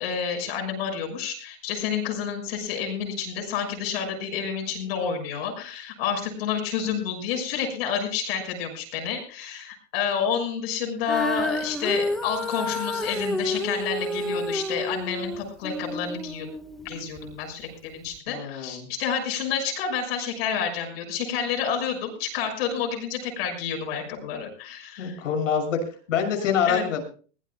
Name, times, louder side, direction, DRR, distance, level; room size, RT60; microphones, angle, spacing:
voice 1, 0.0-16.5 16.8-25.2 26.6-26.9, left 7 dB, 50° left, 3 dB, 6.4 m, -29 dB
Female singing, 11.0-17.4 18.1-18.2, left 1 dB, ahead, 1.2 m, -30 dB
voice 2, 18.3-18.9 25.0-25.8 26.1-27.0, left 7 dB, 80° left, 3 dB, 6.5 m, -25 dB
22.5 x 18.0 x 2.2 m, 0.38 s
supercardioid pair, 155°, 37 cm